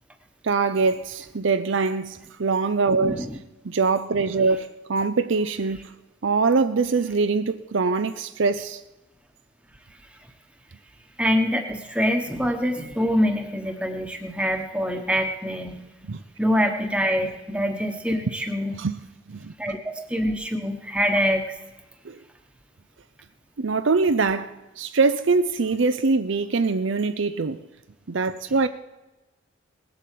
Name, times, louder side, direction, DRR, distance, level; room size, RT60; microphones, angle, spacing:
voice 1, 0.4-3.3 3.6-5.9 6.2-8.8 16.1-16.2 18.7-19.0 19.3-19.5 22.0-22.2 23.6-27.6 28.1-28.7, right 4 dB, 65° right, 0.6 m, -23 dB
voice 2, 3.0-3.4 11.2-15.8 16.4-18.8 19.6-21.5, equal, 5° right, 1.2 m, -25 dB
19.0 x 8.0 x 7.6 m
head